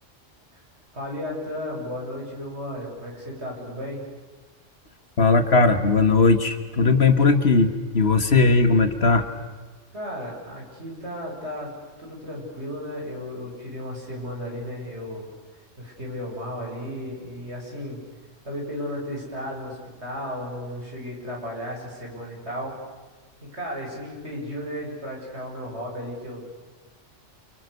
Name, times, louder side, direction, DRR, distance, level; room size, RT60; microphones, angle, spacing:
voice 1, 0.9-4.0 9.9-11.7 12.0-15.3 15.8-18.0 18.4-22.8 23.4-26.4, equal, 60° right, -2 dB, 8.3 m, -34 dB
voice 2, 5.2-9.3, left 3 dB, 55° left, 9 dB, 1.9 m, -18 dB
29.5 x 28.5 x 6.8 m, 1.4 s
omnidirectional pair, 1.3 m